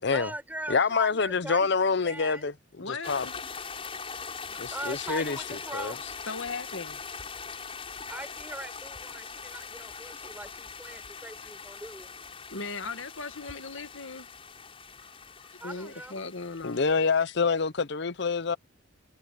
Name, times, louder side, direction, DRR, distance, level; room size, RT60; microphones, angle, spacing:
voice 1, 0.1-2.5 4.5-6.0 8.1-12.1 15.6-16.2, right 1 dB, 10° right, 5.2 m, -40 dB
voice 2, 0.7-2.5 2.9-3.3 4.6-6.0 16.6-18.6, left 5 dB, 55° left, 0.6 m, -26 dB
voice 3, 2.8-3.4 6.2-7.0 8.1-8.2 9.7-10.0 11.0-11.1 12.5-14.3 15.4-16.9, left 4 dB, 75° left, 1.8 m, -38 dB
sound 1, 3.0-17.2, left 5 dB, 25° left, 6.1 m, -42 dB
head